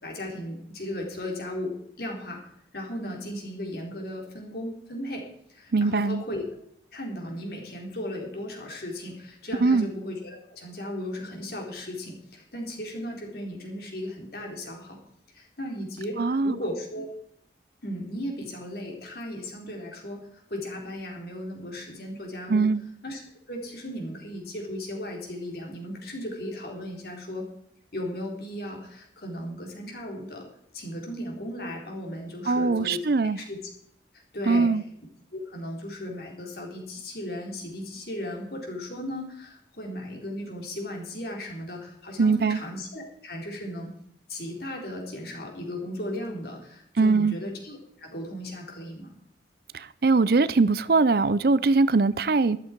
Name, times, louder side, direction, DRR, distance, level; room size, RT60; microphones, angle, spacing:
voice 1, 0.0-2.4 2.7-6.5 6.9-15.0 15.3-17.1 17.8-22.7 23.0-23.2 23.5-27.5 27.9-30.5 30.7-33.1 33.5-33.7 34.3-34.7 35.3-43.9 44.3-49.1, left 1 dB, 55° left, 4.1 m, -36 dB
voice 2, 5.7-6.2 9.6-9.9 16.2-16.6 22.5-22.8 32.5-33.4 34.5-34.8 42.2-42.6 47.0-47.4 49.7-52.6, right 3 dB, 55° right, 0.5 m, -21 dB
13.5 x 12.5 x 4.6 m
head